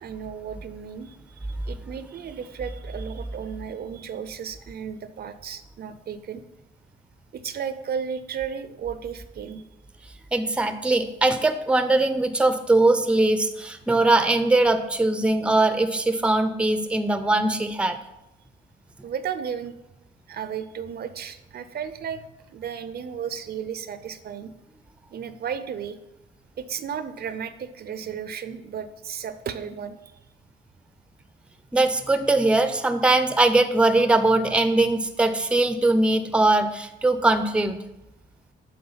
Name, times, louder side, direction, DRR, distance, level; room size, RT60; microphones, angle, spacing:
voice 1, 0.0-1.2 1.6-6.4 7.3-9.6 19.0-19.7 20.3-22.2 22.5-24.5 25.1-26.0 26.6-30.0, right 7 dB, 55° right, 11 dB, 0.6 m, -34 dB
voice 2, 10.3-18.0 31.7-37.8, right 2 dB, 5° right, 10 dB, 0.5 m, -21 dB
7.8 x 3.7 x 5.6 m, 0.91 s
cardioid pair, 90°, 20 cm